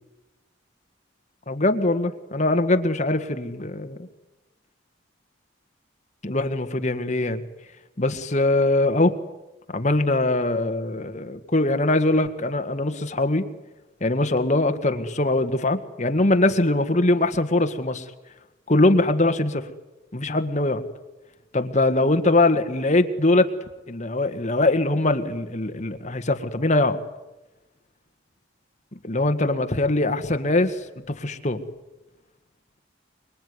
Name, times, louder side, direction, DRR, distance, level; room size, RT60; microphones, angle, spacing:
voice 1, 1.5-4.0 6.2-7.4 8.0-9.1 9.7-13.4 14.0-18.1 18.7-19.7 20.1-20.8 21.5-23.5 23.9-27.0 29.0-31.6, left 2 dB, 40° left, 7 dB, 1.7 m, -22 dB
25.5 x 23.5 x 9.6 m, 1.0 s
head